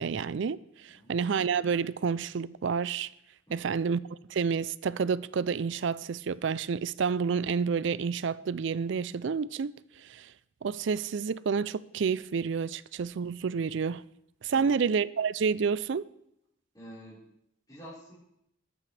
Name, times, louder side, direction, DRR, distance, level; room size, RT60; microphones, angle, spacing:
voice 1, 0.0-3.1 3.5-4.0 4.3-9.7 10.1-10.3 10.6-14.0 14.4-16.1, right 6 dB, 60° right, 0.4 m, -29 dB
voice 2, 16.7-17.2 17.7-18.1, equal, 20° left, 4.6 m, -48 dB
20.0 x 8.6 x 3.3 m
head